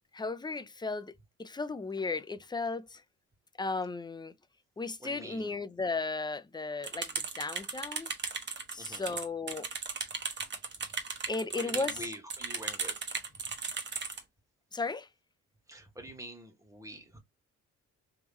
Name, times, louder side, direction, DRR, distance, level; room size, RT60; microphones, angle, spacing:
voice 1, 0.1-3.0 3.6-4.3 4.8-8.1 8.7-9.7 11.3-12.0 14.7-15.1, left 3 dB, 15° left, 0.4 m, -35 dB
voice 2, 5.0-5.5 8.8-9.2 11.5-13.0 15.7-17.2, right 1 dB, 10° right, 1.5 m, -45 dB
sound 1, 6.8-14.2, right 5 dB, 35° right, 1.1 m, -36 dB
3.6 x 3.0 x 3.0 m
cardioid pair, 90°, 30 cm